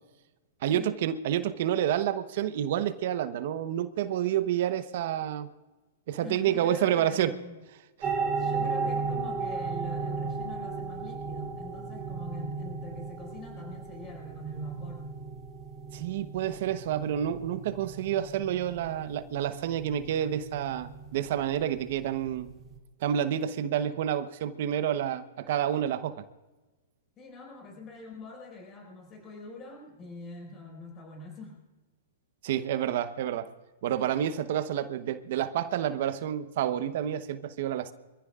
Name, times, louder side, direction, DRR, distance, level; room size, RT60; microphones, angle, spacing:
voice 1, 0.6-5.5 6.1-7.3 8.0-8.1 15.9-22.5 23.0-26.2 32.4-33.5 33.8-37.9, right 10 dB, 60° right, 1.0 m, -29 dB
voice 2, 6.2-7.6 8.0-15.1 27.2-31.6, left 2 dB, 30° left, 5.4 m, -44 dB
sound 1, 8.0-22.8, right 4 dB, 25° right, 2.3 m, -35 dB
26.5 x 15.0 x 2.5 m
hypercardioid pair, 130°, 0 cm